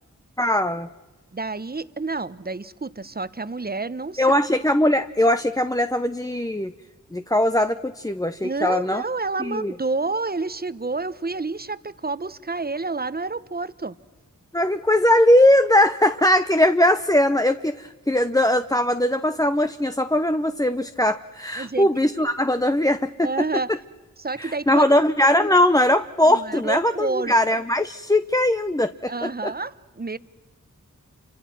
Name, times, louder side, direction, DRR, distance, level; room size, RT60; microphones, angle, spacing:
voice 1, 0.4-0.9 4.2-6.7 7.1-9.0 9.4-9.7 14.5-23.3 24.4-29.5, left 1 dB, 10° left, 10 dB, 0.7 m, -20 dB
voice 2, 1.3-4.3 8.4-13.9 21.6-21.9 23.2-23.7 24.2-24.9 26.3-27.3 29.1-30.2, right 3 dB, 30° right, 16 dB, 0.9 m, -29 dB
29.0 x 25.5 x 6.1 m, 1.3 s
cardioid pair, 40°, 33 cm